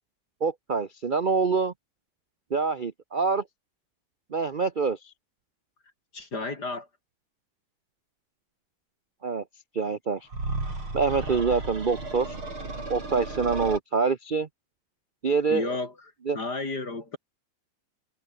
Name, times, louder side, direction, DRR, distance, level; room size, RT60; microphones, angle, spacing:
voice 1, 0.4-1.7 2.5-3.4 4.3-5.1 9.2-9.4 9.7-10.3 10.9-12.3 12.9-14.5 15.2-15.7 16.3-16.4, right 5 dB, 70° right, 0.4 m, -26 dB
voice 2, 6.1-6.9 15.5-15.9 16.3-17.2, left 3 dB, 50° left, 5.1 m, -32 dB
sound 1, 10.3-13.8, right 2 dB, 85° right, 8.3 m, -34 dB
omnidirectional pair, 2.3 m